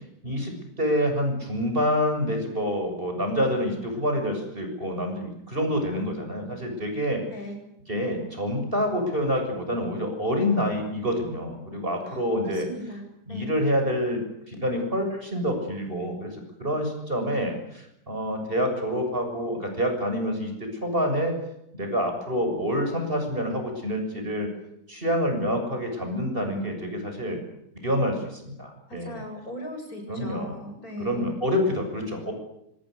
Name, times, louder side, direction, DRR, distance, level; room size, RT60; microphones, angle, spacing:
voice 1, 0.2-7.2 7.9-12.7 13.3-14.2 14.5-21.4 21.7-24.5 24.9-27.4 27.8-29.2 30.1-30.6 31.0-32.3, equal, 30° right, 4 dB, 7.2 m, -27 dB
voice 2, 7.3-7.6 12.0-12.2 12.5-13.6 28.9-31.4, equal, 55° left, 3 dB, 8.4 m, -38 dB
26.5 x 25.5 x 6.6 m, 0.80 s
omnidirectional pair, 1.8 m